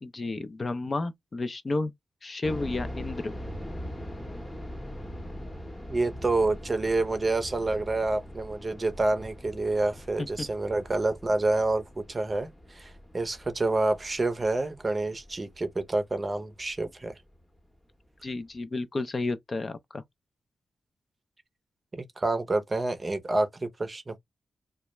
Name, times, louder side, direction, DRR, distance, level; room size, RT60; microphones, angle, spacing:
voice 1, 0.0-1.9 2.2-3.4 10.2-10.3 18.2-20.0, left 3 dB, 40° left, 0.3 m, -31 dB
sound 1, 2.4-17.3 17.6-17.7 18.3-18.6, equal, 20° left, 0.8 m, -42 dB
voice 2, 5.9-17.1 22.2-24.2, right 2 dB, 30° right, 0.5 m, -28 dB
2.2 x 2.0 x 2.9 m
cardioid pair, 85°, 0 cm